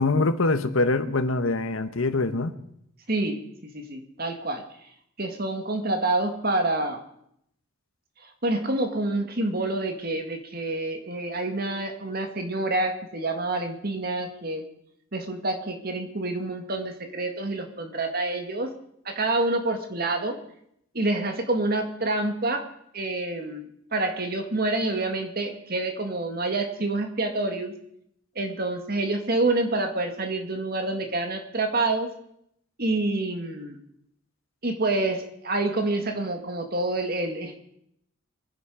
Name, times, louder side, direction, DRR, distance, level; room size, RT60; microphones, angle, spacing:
voice 1, 0.0-2.5, left 3 dB, 75° left, 10 dB, 1.1 m, -24 dB
voice 2, 3.1-4.6 5.2-7.0 8.4-14.7 15.1-18.7 19.1-20.4 20.9-22.7 22.9-23.6 23.9-27.7 28.4-32.1 32.8-33.8 34.6-37.6, right 2 dB, 45° right, 5 dB, 1.8 m, -27 dB
23.0 x 10.5 x 5.0 m, 0.74 s
head